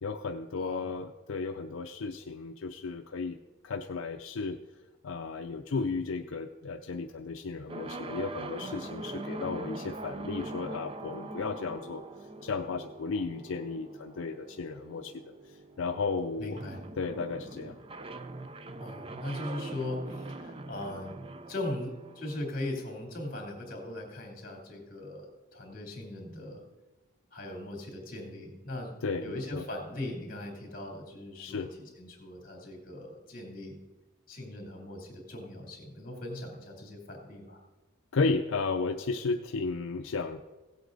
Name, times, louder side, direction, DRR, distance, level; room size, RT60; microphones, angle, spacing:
voice 1, 0.0-3.4 3.6-4.6 5.0-12.0 12.4-15.1 15.8-16.6 17.0-17.8 29.0-29.7 31.4-31.7 38.1-40.4, left 4 dB, 75° left, 6 dB, 0.5 m, -34 dB
sound 1, 7.7-23.5, right 2 dB, 25° right, 0.5 m, -43 dB
voice 2, 16.4-16.8 18.8-21.1 21.5-26.6 27.3-28.9 29.2-33.8 34.3-37.6, left 1 dB, 45° left, 0 dB, 2.9 m, -39 dB
16.5 x 8.1 x 3.9 m, 1.2 s
head